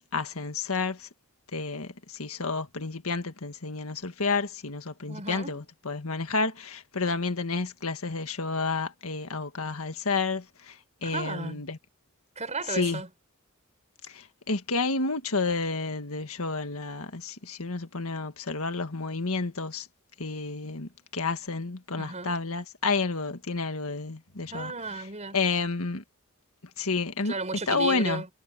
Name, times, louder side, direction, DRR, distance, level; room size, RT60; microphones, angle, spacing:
voice 1, 0.1-1.1 1.5-11.8 12.7-13.0 14.1-19.9 20.2-24.7 25.3-26.0 26.8-27.3 27.7-28.2, left 4 dB, 75° left, 1.8 m, -30 dB
voice 2, 5.1-5.6 11.0-11.6 12.4-13.1 22.0-22.4 24.5-25.4 27.2-28.3, right 3 dB, 30° right, 6.9 m, -34 dB
head